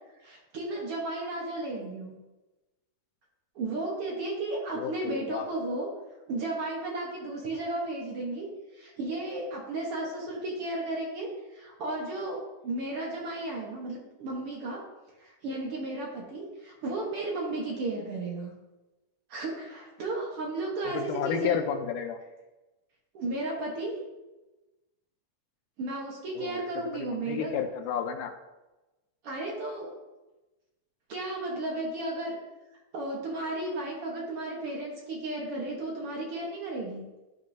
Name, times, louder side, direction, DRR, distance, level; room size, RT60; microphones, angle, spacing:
voice 1, 0.2-2.1 3.6-5.9 6.3-8.5 8.7-14.8 15.2-18.5 19.3-21.6 23.1-23.9 25.8-27.5 29.2-29.9 31.1-32.4 32.9-37.1, right 2 dB, 60° right, -2 dB, 1.7 m, -34 dB
voice 2, 4.7-5.5 21.0-22.2 26.4-26.6 26.9-28.3, left 8 dB, 85° left, 8 dB, 2.1 m, -32 dB
12.0 x 5.4 x 2.7 m, 1.1 s
omnidirectional pair, 3.7 m